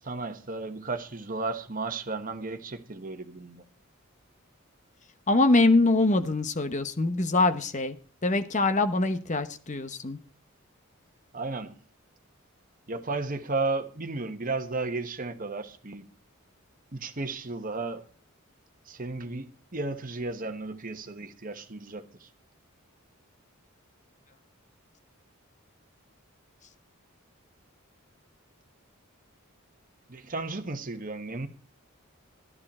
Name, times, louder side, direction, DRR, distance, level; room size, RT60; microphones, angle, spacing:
voice 1, 0.0-3.6 11.3-11.8 12.9-16.1 16.9-18.0 18.9-22.3 30.1-31.5, right 3 dB, 40° right, 1.3 m, -34 dB
voice 2, 5.3-8.0 8.2-10.2, left 2 dB, 35° left, 1.0 m, -24 dB
12.5 x 11.5 x 4.3 m
head